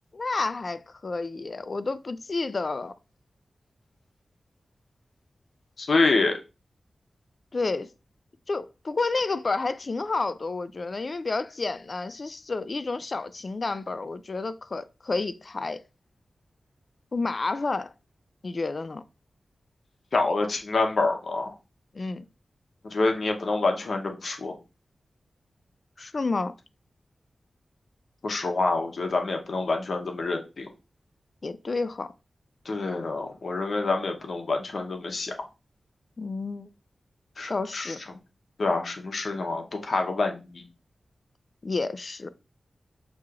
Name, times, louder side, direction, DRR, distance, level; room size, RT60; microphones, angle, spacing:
voice 1, 0.1-2.9 7.5-7.9 8.5-15.8 17.1-17.9 18.4-19.0 21.9-22.2 26.0-26.5 31.4-32.1 36.2-36.7 37.5-38.0 41.6-42.3, left 3 dB, 45° left, 0.3 m, -30 dB
voice 2, 5.8-6.4 20.1-21.5 22.8-24.5 28.2-30.7 32.7-35.3 37.4-37.9 38.6-40.6, left 3 dB, 65° left, 0.8 m, -27 dB
6.1 x 2.8 x 2.4 m
wide cardioid pair, 120°, 0 cm